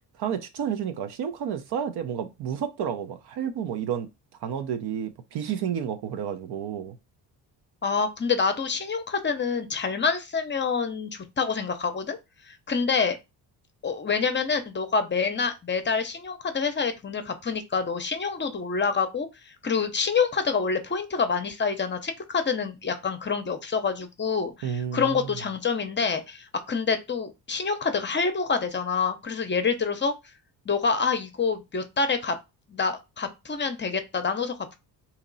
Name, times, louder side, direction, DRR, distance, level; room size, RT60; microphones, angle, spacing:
voice 1, 0.2-4.1 4.4-7.0 24.6-25.4, right 8 dB, 70° right, 0.7 m, -31 dB
voice 2, 7.8-12.2 12.5-13.2 13.8-19.3 19.6-30.1 30.7-32.3 32.7-34.7, left 5 dB, 30° left, 0.6 m, -27 dB
2.9 x 2.9 x 3.9 m
cardioid pair, 100°, 40 cm